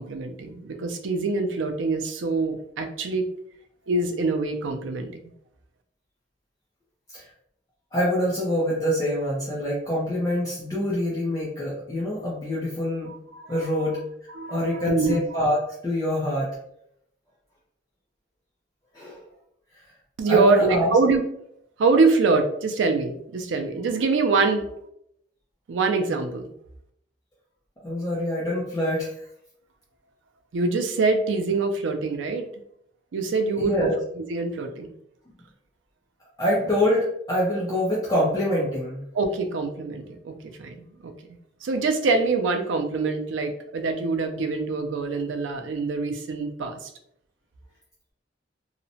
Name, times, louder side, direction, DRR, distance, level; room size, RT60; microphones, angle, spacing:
voice 1, 0.0-3.3 3.9-5.1 13.1-13.8 14.3-15.4 20.2-21.2 21.8-24.7 25.7-26.5 30.5-32.5 33.1-33.9 34.3-34.9 39.1-40.3 40.6-41.1 41.6-46.9, right 3 dB, 85° right, 5 dB, 0.4 m, -24 dB
voice 2, 7.9-13.1 13.5-14.0 14.5-15.6 15.8-16.5 18.9-19.2 20.3-20.9 27.8-29.1 33.6-33.9 36.4-39.0, equal, 20° left, -7 dB, 0.5 m, -25 dB
2.8 x 2.1 x 2.6 m, 0.73 s
head